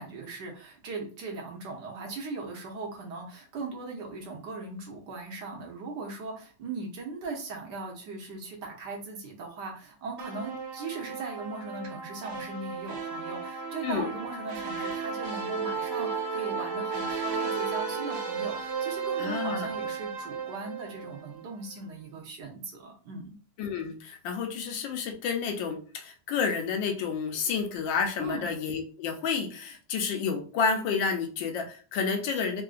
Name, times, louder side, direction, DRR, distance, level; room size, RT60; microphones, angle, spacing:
voice 1, 0.0-23.4 28.2-28.5, right 3 dB, 65° right, 1 dB, 1.4 m, -39 dB
sound 1, 10.2-21.4, right 5 dB, 80° right, 1.4 m, -34 dB
voice 2, 19.2-19.7 23.6-32.6, left 5 dB, 85° left, 5 dB, 1.3 m, -30 dB
3.6 x 2.5 x 2.4 m, 0.39 s
omnidirectional pair, 2.1 m